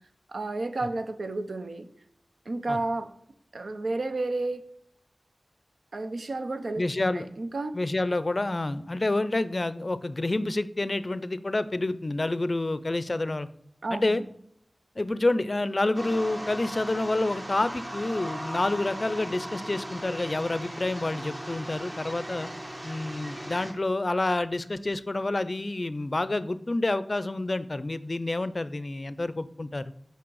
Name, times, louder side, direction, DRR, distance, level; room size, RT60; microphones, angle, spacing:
voice 1, 0.3-1.9 2.5-3.1 3.5-4.6 5.9-7.7 13.8-14.2, right 2 dB, 80° right, 8 dB, 0.6 m, -31 dB
voice 2, 6.8-7.3 7.7-13.5 13.9-14.2 15.0-22.5 22.8-29.9, left 2 dB, 45° left, 14 dB, 0.4 m, -28 dB
sound 1, 15.9-23.7, right 1 dB, 35° right, 1.3 m, -38 dB
6.0 x 5.6 x 4.7 m, 0.73 s
wide cardioid pair, 55°, 0 cm